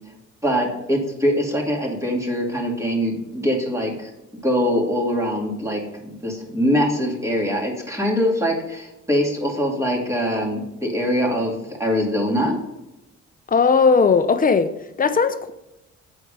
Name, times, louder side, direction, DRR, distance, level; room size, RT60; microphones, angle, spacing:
voice 1, 0.4-4.1 4.4-12.6, equal, 10° right, 2.5 m, -23 dB
voice 2, 13.5-15.5, left 5 dB, 30° left, 0.7 m, -18 dB
9.0 x 4.5 x 5.3 m
cardioid pair, 90°, 30 cm